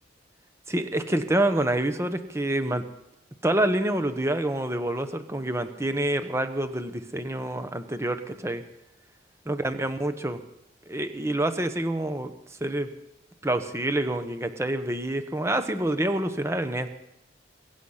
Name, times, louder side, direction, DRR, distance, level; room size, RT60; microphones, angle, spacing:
voice 1, 0.7-2.8 3.4-8.6 9.5-10.4 10.9-12.3 12.6-12.9 13.4-16.9, right 1 dB, 15° right, 9 dB, 0.9 m, -27 dB
22.5 x 8.3 x 5.7 m, 0.87 s
head